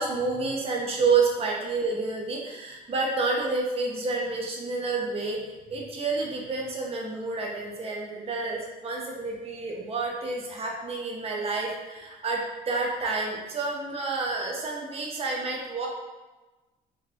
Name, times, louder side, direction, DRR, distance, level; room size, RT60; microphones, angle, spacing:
voice 1, 0.0-15.9, right 3 dB, 35° right, -1 dB, 0.7 m, -29 dB
3.4 x 2.0 x 2.7 m, 1.2 s
cardioid pair, 110°, 17 cm